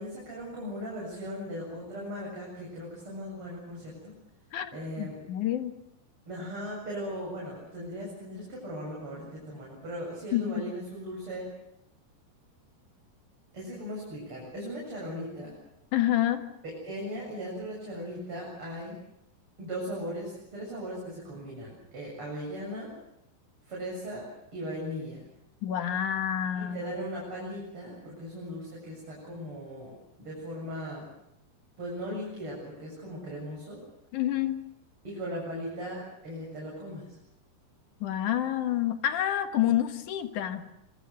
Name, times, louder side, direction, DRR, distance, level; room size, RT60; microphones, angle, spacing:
voice 1, 0.0-4.1 4.7-5.2 6.3-11.5 13.5-15.5 16.6-18.9 19.6-22.9 23.7-24.3 24.5-25.2 26.5-29.9 30.2-31.1 31.8-33.8 35.0-37.2, equal, 30° right, -4 dB, 8.3 m, -38 dB
voice 2, 5.0-5.7 10.3-10.6 15.9-16.5 25.6-26.9 34.1-34.6 38.0-40.7, left 11 dB, 60° left, 7 dB, 2.5 m, -28 dB
26.0 x 24.0 x 6.7 m, 0.83 s
omnidirectional pair, 4.8 m